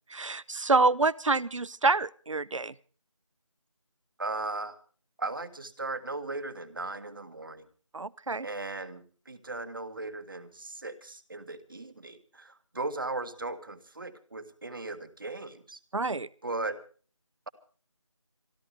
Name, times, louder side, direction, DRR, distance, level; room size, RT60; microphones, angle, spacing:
voice 1, 0.1-2.7 7.9-8.5 15.9-16.3, right 3 dB, 70° right, 21 dB, 0.7 m, -27 dB
voice 2, 4.2-4.8 5.2-7.7 8.4-15.8 16.4-16.8, right 2 dB, 40° right, 11 dB, 1.8 m, -37 dB
26.5 x 13.5 x 3.4 m, 0.40 s
figure-of-eight pair, 170°, 17 cm